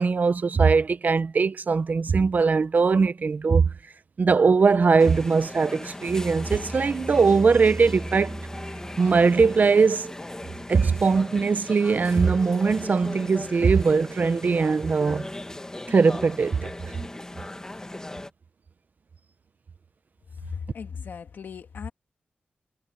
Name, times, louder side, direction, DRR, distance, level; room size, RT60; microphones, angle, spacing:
voice 1, 0.0-3.7 4.2-8.4 9.0-10.1 10.7-15.3 15.9-16.6, right 5 dB, 60° right, 0.8 m, -21 dB
sound 1, 5.0-18.3, left 1 dB, 20° left, 1.9 m, -38 dB
sound 2, 6.1-10.2, right 2 dB, 25° right, 4.6 m, -37 dB
voice 2, 20.4-21.9, left 6 dB, 85° left, 2.1 m, -37 dB
cardioid pair, 70°, 3 cm